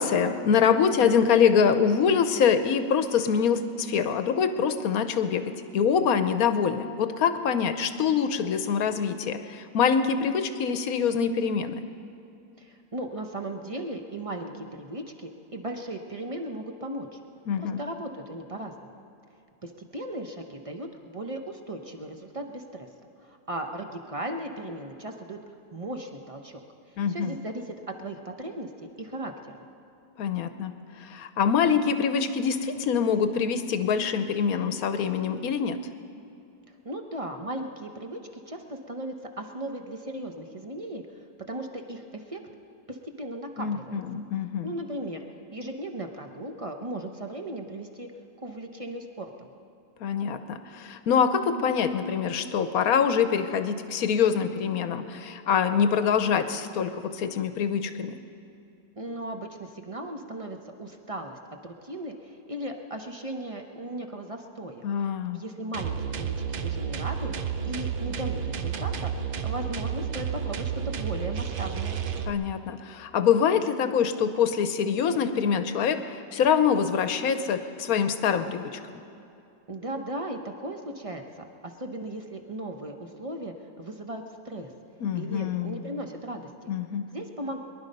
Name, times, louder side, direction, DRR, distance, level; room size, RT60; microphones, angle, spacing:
voice 1, 0.0-11.8 17.5-17.8 27.0-27.4 30.2-30.7 31.0-35.8 43.6-44.7 50.0-58.2 64.8-65.4 72.3-79.0 85.0-85.9 86.7-87.1, left 7 dB, 60° left, 10 dB, 1.2 m, -25 dB
voice 2, 12.6-17.2 17.6-18.9 19.6-22.9 23.2-25.4 25.7-26.6 27.1-29.6 36.8-38.2 38.5-41.2 41.5-42.4 42.9-44.0 44.6-45.2 45.5-48.1 48.4-49.5 59.0-64.8 65.3-69.1 69.4-72.0 79.7-84.7 85.1-86.7 87.1-87.6, right 1 dB, 30° right, 4 dB, 0.6 m, -37 dB
sound 1, 65.7-72.3, right 7 dB, 80° right, 0.4 m, -31 dB
23.0 x 11.5 x 5.3 m, 2.7 s
omnidirectional pair, 1.8 m